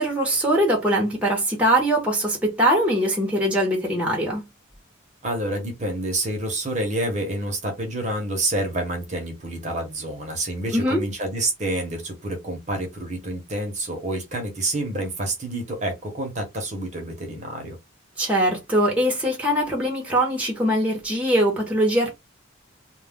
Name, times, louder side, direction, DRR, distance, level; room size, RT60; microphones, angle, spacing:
voice 1, 0.0-4.5 10.7-11.0 18.2-22.1, right 1 dB, 5° right, 0.8 m, -22 dB
voice 2, 5.2-17.8, right 1 dB, 35° right, 0.8 m, -28 dB
2.3 x 2.2 x 3.5 m
head